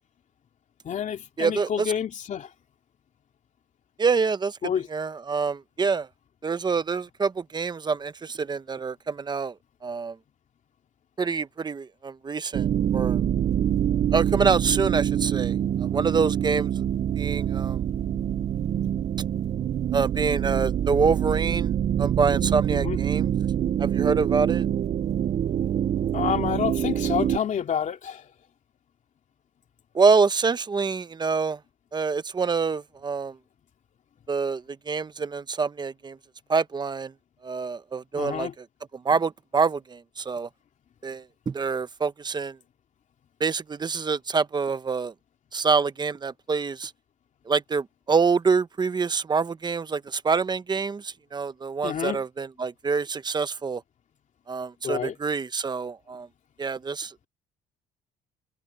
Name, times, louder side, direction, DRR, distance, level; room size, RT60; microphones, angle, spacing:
voice 1, 0.8-2.5 4.6-4.9 22.7-23.0 26.1-28.3 38.2-38.5 51.8-52.2 54.8-55.1, left 8 dB, 45° left, 3.0 m, -28 dB
voice 2, 1.4-1.9 4.0-4.6 4.9-6.1 6.4-9.5 9.8-10.2 11.2-12.7 12.9-13.2 14.1-15.6 15.8-16.8 17.2-17.8 19.9-21.7 22.0-23.3 23.8-24.7 29.9-31.6 31.9-33.4 34.3-36.2 36.5-37.1 37.4-38.5 38.9-40.5 41.0-42.6 43.4-45.1 45.5-46.9 47.5-53.8 54.5-56.3 56.6-57.2, right 5 dB, 25° right, 0.9 m, -26 dB
sound 1, 12.5-27.4, right 10 dB, 40° right, 0.4 m, -25 dB
cardioid pair, 110°, 17 cm